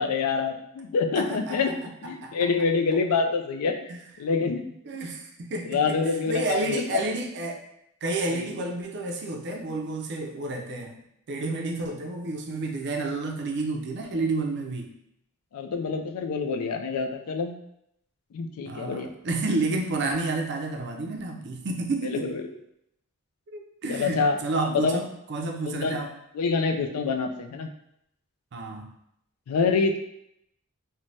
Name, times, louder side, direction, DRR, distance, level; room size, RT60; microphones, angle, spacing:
voice 1, 0.0-1.7 2.0-3.7 4.2-5.1 5.7-6.8 8.3-8.5 15.5-17.5 18.3-19.1 22.0-22.4 23.9-25.0 25.6-26.0 26.3-27.7 29.5-30.0, left 4 dB, 85° left, 6 dB, 0.4 m, -26 dB
voice 2, 1.1-1.7 2.2-2.3 3.9-4.0 4.8-6.0 6.3-7.6 8.0-11.0 11.3-14.9 18.7-22.3 23.5-26.1 28.5-28.9, right 2 dB, 55° right, 2 dB, 0.4 m, -30 dB
3.1 x 2.1 x 2.6 m, 0.76 s
head